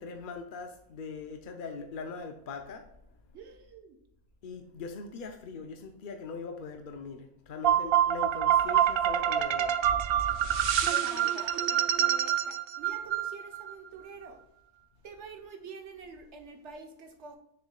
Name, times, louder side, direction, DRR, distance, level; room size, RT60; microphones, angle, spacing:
voice 1, 0.0-3.2 4.4-9.8 10.8-10.9, left 4 dB, 55° left, 0.5 m, -41 dB
voice 2, 3.3-4.0 10.9-14.4 15.0-17.4, right 4 dB, 55° right, 1.2 m, -47 dB
sound 1, 7.6-13.7, right 10 dB, 70° right, 0.5 m, -26 dB
6.9 x 6.5 x 2.3 m
omnidirectional pair, 1.6 m